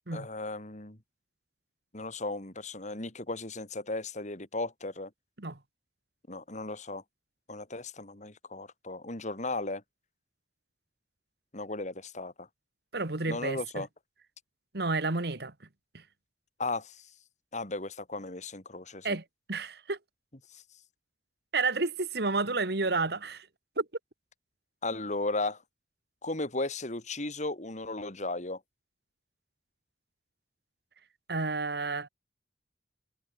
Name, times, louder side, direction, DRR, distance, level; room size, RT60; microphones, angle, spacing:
voice 1, 0.1-1.0 1.9-5.1 6.3-7.0 7.5-9.8 11.5-12.5 13.3-13.9 16.6-17.0 17.5-19.2 20.5-20.6 24.8-25.6 26.2-28.6, left 2 dB, 45° left, 3.2 m, -35 dB
voice 2, 12.9-13.9 14.7-15.5 15.9-16.0 19.0-20.0 21.5-23.5 23.8-23.9 31.3-32.1, right 3 dB, 65° right, 1.8 m, -31 dB
head